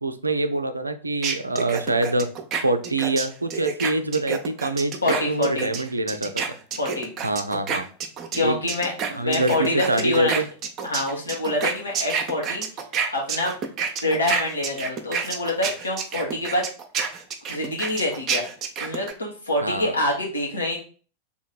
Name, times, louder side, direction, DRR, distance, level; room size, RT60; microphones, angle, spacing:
voice 1, 0.0-2.3 2.6-6.4 7.2-7.9 8.4-8.6 9.2-10.5 19.6-19.9, right 2 dB, 80° right, 9 dB, 0.4 m, -25 dB
sound 1, 1.2-8.4 8.7-19.1, right 6 dB, 30° right, 0.7 m, -28 dB
voice 2, 5.0-5.7 6.8-7.1 8.3-10.3 10.8-12.6 13.1-13.5 14.0-16.6 17.5-18.5 18.8-20.8, left 2 dB, 80° left, -2 dB, 1.6 m, -26 dB
3.5 x 3.1 x 4.0 m, 0.39 s
figure-of-eight pair, 90°, 0 cm